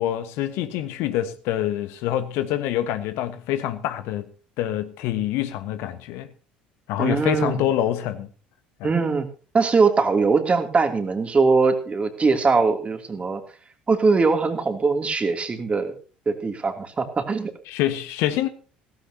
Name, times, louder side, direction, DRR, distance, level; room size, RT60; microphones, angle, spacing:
voice 1, 0.0-4.2 4.6-6.3 6.9-8.3 8.8-8.9 17.7-18.5, left 12 dB, 60° left, 1.3 m, -26 dB
voice 2, 7.0-7.6 8.8-9.3 9.5-13.4 13.9-15.9 16.3-17.5, right 4 dB, 25° right, 2.9 m, -21 dB
16.5 x 15.5 x 2.9 m
figure-of-eight pair, 60°, 5 cm